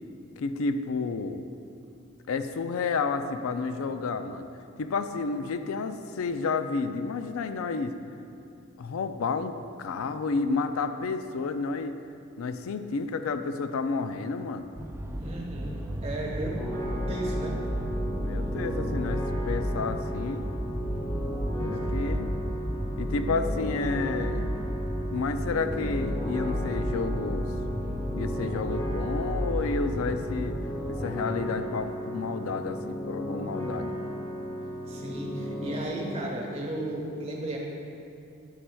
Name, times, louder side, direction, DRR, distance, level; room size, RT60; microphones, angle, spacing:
voice 1, 0.4-1.4 2.3-4.5 4.8-7.9 8.8-12.0 12.4-14.7 18.2-20.5 21.6-22.3 23.0-24.5 25.1-27.5 28.1-30.6 30.9-33.9, left 4 dB, 85° left, 9 dB, 0.4 m, -31 dB
sound 1, 14.8-30.9, equal, 10° right, 0.3 m, -33 dB
voice 2, 15.2-16.6 17.1-17.6 22.0-22.1 34.9-37.6, right 1 dB, 30° right, -2 dB, 1.2 m, -34 dB
sound 2, 16.6-35.8, equal, 20° left, 1.3 m, -35 dB
9.0 x 8.4 x 2.3 m, 2.5 s
head